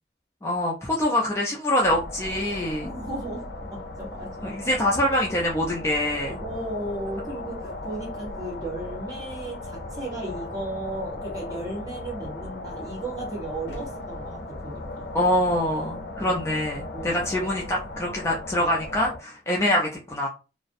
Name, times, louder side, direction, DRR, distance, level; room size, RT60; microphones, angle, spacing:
voice 1, 0.4-2.9 4.4-6.4 15.1-20.3, left 1 dB, 15° left, 0.4 m, -25 dB
sound 1, 1.8-19.2, left 2 dB, 75° left, 0.5 m, -37 dB
voice 2, 2.8-4.6 6.3-15.0 16.2-16.4 16.9-17.2, right 2 dB, 20° right, 1.0 m, -35 dB
2.4 x 2.0 x 2.5 m
head